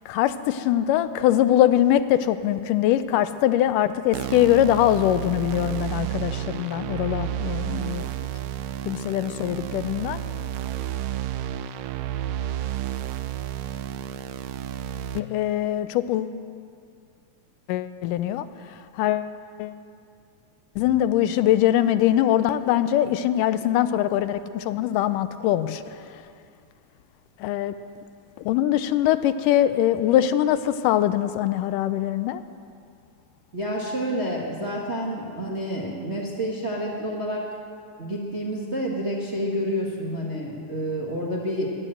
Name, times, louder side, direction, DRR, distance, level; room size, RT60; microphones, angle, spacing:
voice 1, 0.1-8.1 8.9-10.2 15.2-16.4 17.7-18.5 19.0-19.3 19.6-19.8 20.8-25.8 26.1-26.2 27.4-27.8 28.5-32.4, left 12 dB, 85° left, 12 dB, 2.2 m, -22 dB
sound 1, 4.1-15.2, right 11 dB, 85° right, 2.3 m, -31 dB
voice 2, 33.5-37.4 38.0-41.7, equal, 35° right, -4 dB, 1.2 m, -29 dB
17.5 x 11.0 x 7.7 m, 2.3 s
omnidirectional pair, 3.7 m